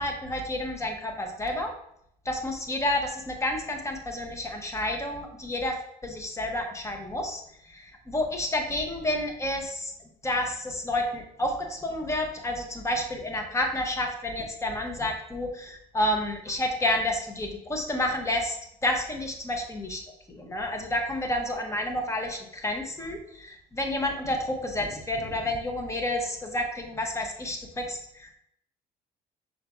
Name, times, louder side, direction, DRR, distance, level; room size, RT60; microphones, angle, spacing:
voice 1, 0.0-1.7 2.2-5.7 6.0-9.9 10.2-18.6 18.8-20.0 20.3-28.3, left 1 dB, 15° left, 3 dB, 0.8 m, -30 dB
5.6 x 3.9 x 2.3 m, 0.73 s
cardioid pair, 110°, 17 cm